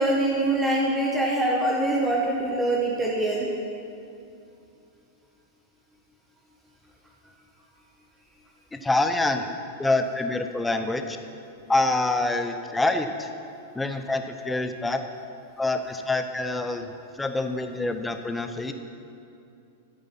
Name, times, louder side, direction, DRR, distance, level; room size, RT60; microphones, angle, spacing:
voice 1, 0.0-3.5, right 1 dB, 10° right, -3 dB, 1.4 m, -24 dB
voice 2, 8.7-9.5 9.8-11.2 11.7-13.3 13.7-15.0 15.6-16.9 17.2-18.7, left 2 dB, 10° left, 7 dB, 0.8 m, -26 dB
13.0 x 8.7 x 5.9 m, 2.6 s
figure-of-eight pair, 95°, 0 cm